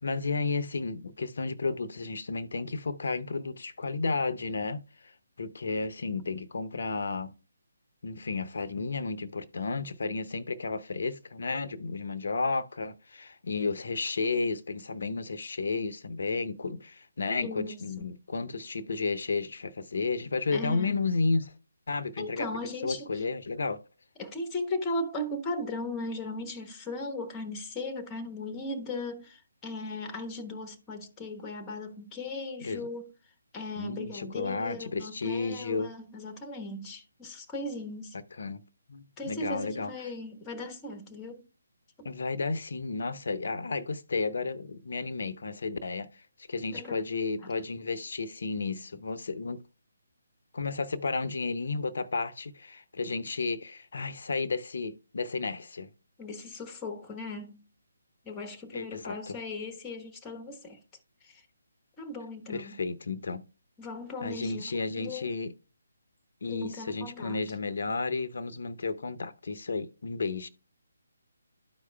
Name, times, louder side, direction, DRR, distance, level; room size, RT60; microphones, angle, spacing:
voice 1, 0.0-5.1 5.4-7.3 8.0-21.5 21.9-22.5 22.8-23.8 32.6-32.9 33.8-35.9 38.4-38.6 38.9-39.9 42.0-46.2 46.5-49.6 50.5-55.9 58.7-59.4 62.5-63.4 64.2-65.5 66.4-70.5, left 4 dB, 60° left, 0.7 m, -32 dB
voice 2, 17.4-18.1 20.5-21.0 22.2-23.2 24.2-33.1 33.5-38.2 39.2-41.5 46.7-47.0 47.4-47.5 56.2-57.6 58.2-60.8 61.2-61.5 62.0-62.8 63.8-64.6 64.9-65.3 66.5-67.5, left 2 dB, 15° left, 1.1 m, -37 dB
13.0 x 4.7 x 2.2 m
figure-of-eight pair, 145°, 0 cm